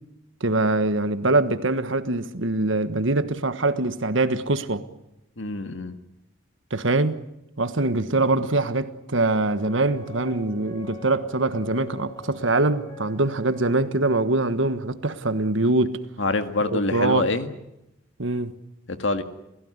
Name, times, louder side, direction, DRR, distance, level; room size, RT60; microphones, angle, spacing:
voice 1, 0.4-4.8 6.7-7.2 7.6-16.0 16.6-17.3 18.2-18.5, right 2 dB, 65° right, 1.4 m, -23 dB
voice 2, 5.4-6.0 16.2-17.5 18.9-19.2, left 3 dB, 65° left, 1.9 m, -25 dB
sound 1, 9.2-14.3, left 3 dB, 15° left, 5.5 m, -44 dB
28.5 x 16.5 x 9.7 m
head